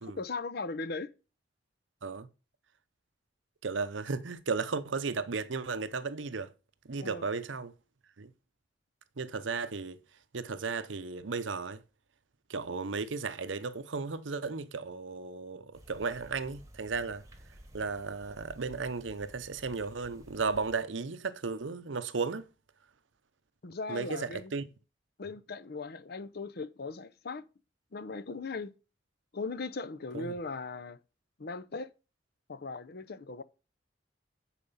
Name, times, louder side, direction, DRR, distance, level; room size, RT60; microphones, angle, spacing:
voice 1, 0.0-1.1 7.0-7.3 23.6-24.5 25.2-27.4 27.9-28.7 29.3-31.0 31.4-31.9 32.5-33.4, left 3 dB, 60° left, 0.7 m, -38 dB
voice 2, 3.6-6.5 6.8-7.7 8.2-8.3 9.2-10.0 10.3-11.8 12.5-17.2 17.7-22.5 23.9-24.6 30.1-30.3, right 4 dB, 90° right, 0.8 m, -35 dB
sound 1, 15.7-20.8, equal, 20° right, 1.2 m, -54 dB
10.0 x 4.9 x 5.6 m
head